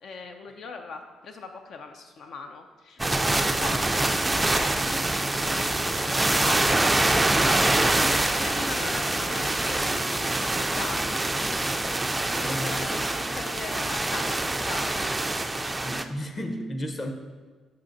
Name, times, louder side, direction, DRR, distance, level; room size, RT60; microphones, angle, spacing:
voice 1, 0.0-11.3 12.1-13.1 13.4-15.4, left 4 dB, 65° left, 5 dB, 0.4 m, -40 dB
sound 1, 3.0-16.0, right 2 dB, 15° right, 0.3 m, -25 dB
voice 2, 12.4-13.0 15.8-17.1, equal, 30° left, 5 dB, 0.7 m, -33 dB
7.0 x 5.5 x 2.6 m, 1.4 s
cardioid pair, 90°, 0 cm